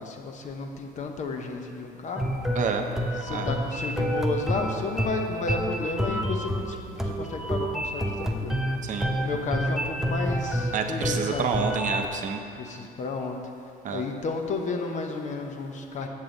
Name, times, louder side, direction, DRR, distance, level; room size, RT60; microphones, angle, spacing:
voice 1, 0.0-2.3 3.2-8.6 9.2-11.5 12.6-13.4 13.9-16.1, left 3 dB, 45° left, 4 dB, 0.7 m, -32 dB
sound 1, 2.2-12.1, equal, ahead, 0.6 m, -28 dB
voice 2, 2.6-2.9 3.3-3.5 8.8-9.1 10.7-12.4 13.8-14.0, right 6 dB, 50° right, 5 dB, 0.6 m, -28 dB
7.3 x 6.9 x 3.9 m, 2.6 s
cardioid pair, 110°, 17 cm